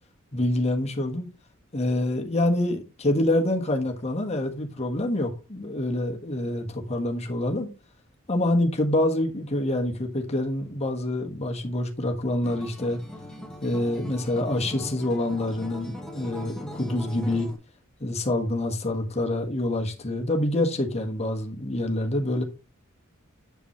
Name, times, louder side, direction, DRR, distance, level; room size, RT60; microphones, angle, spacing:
voice 1, 0.3-1.3 1.7-7.7 8.3-13.0 13.6-17.5 18.0-22.4, left 1 dB, 30° left, 1.4 m, -26 dB
Acoustic guitar, 12.4-17.6, left 1 dB, 5° left, 1.2 m, -40 dB
7.0 x 7.0 x 3.1 m
head